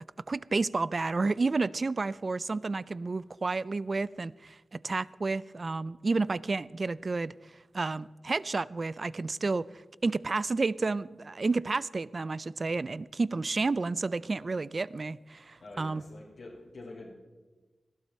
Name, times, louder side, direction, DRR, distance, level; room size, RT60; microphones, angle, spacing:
voice 1, 0.3-7.3 7.7-16.0, right 3 dB, 45° right, 20 dB, 0.4 m, -31 dB
voice 2, 15.6-17.1, left 2 dB, 70° left, -5 dB, 2.9 m, -46 dB
19.0 x 12.5 x 4.3 m, 1.2 s
wide cardioid pair, 75°, 0 cm